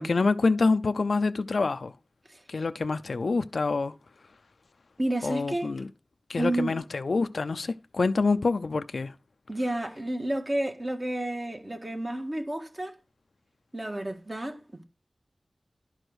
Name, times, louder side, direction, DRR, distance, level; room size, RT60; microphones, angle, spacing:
voice 1, 0.0-1.9 2.5-3.9 5.2-5.9 6.3-9.1, left 3 dB, 75° left, 0.4 m, -26 dB
voice 2, 5.0-5.9 6.4-6.8 9.5-13.0 13.7-14.8, right 1 dB, 30° right, 1.7 m, -31 dB
11.5 x 4.9 x 6.2 m
wide cardioid pair, 80°, 0 cm